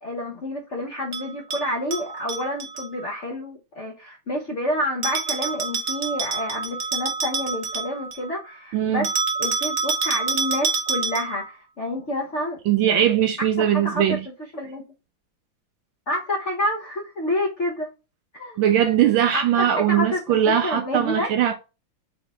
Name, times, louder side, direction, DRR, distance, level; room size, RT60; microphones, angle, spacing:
voice 1, 0.0-9.1 9.4-12.6 12.8-13.1 13.6-14.2 14.5-14.8 16.1-17.9 18.3-18.6 19.3-21.3, left 1 dB, 50° left, 0.8 m, -28 dB
Bell, 1.1-2.9 5.0-8.3 9.0-11.4, right 5 dB, 50° right, 0.9 m, -27 dB
voice 2, 8.7-9.1 12.7-14.3 18.6-21.6, right 10 dB, 75° right, 1.2 m, -20 dB
3.5 x 3.4 x 4.1 m
omnidirectional pair, 2.4 m